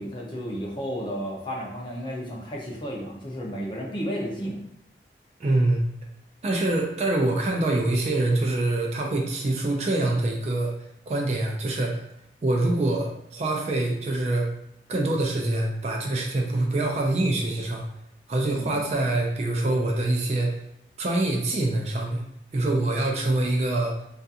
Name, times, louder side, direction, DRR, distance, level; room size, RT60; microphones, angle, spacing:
voice 1, 0.0-4.6 18.6-18.7, equal, 25° left, -2 dB, 0.5 m, -32 dB
voice 2, 5.4-5.8 6.4-12.0 12.4-14.5 14.9-17.8 18.3-20.6 21.0-22.2 22.5-23.9, right 2 dB, 35° right, 0 dB, 0.3 m, -25 dB
2.4 x 2.3 x 2.7 m, 0.76 s
head